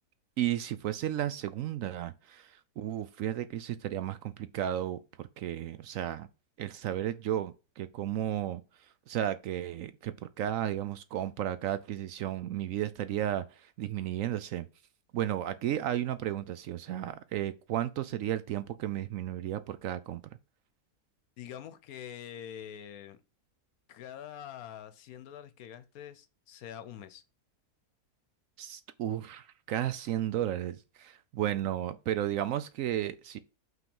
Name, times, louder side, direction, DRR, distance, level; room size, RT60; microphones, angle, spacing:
voice 1, 0.4-6.3 6.6-8.6 9.1-14.7 15.1-20.2 28.6-33.4, right 11 dB, 70° right, 0.8 m, -33 dB
voice 2, 21.4-23.2 23.9-27.2, left 9 dB, 70° left, 1.1 m, -45 dB
5.8 x 3.8 x 5.3 m
omnidirectional pair, 1.6 m